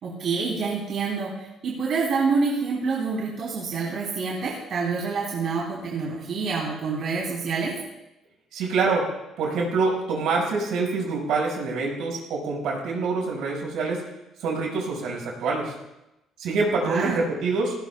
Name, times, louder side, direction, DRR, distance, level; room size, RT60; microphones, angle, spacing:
voice 1, 0.0-7.8 16.8-17.2, right 4 dB, 55° right, -4 dB, 3.3 m, -27 dB
voice 2, 8.5-9.1 9.4-14.0 14.4-15.7 16.4-17.9, right 3 dB, 75° right, -2 dB, 5.6 m, -26 dB
18.5 x 18.0 x 2.3 m, 0.91 s
cardioid pair, 135°, 0 cm